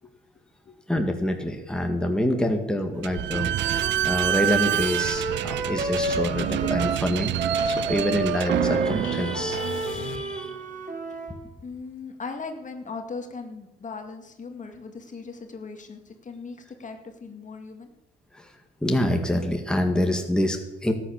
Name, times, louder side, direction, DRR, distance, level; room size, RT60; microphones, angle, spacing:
voice 1, 0.0-0.8 5.6-5.9 6.4-6.5 11.1-11.2 11.6-17.9, left 4 dB, 40° left, 5 dB, 1.9 m, -39 dB
voice 2, 0.9-7.3 7.7-10.6 18.3-18.5 18.8-20.9, left 1 dB, 5° left, 3 dB, 1.9 m, -26 dB
Slam / Squeak, 3.0-10.3, right 13 dB, 65° right, 0.4 m, -28 dB
Wind instrument woodwind instrument, 3.3-7.0 7.4-11.4, right 3 dB, 40° right, 2.1 m, -30 dB
sound 1, 9.0-10.8, left 7 dB, 75° left, 1.6 m, -39 dB
13.5 x 9.3 x 7.1 m, 0.95 s
cardioid pair, 90°, 20 cm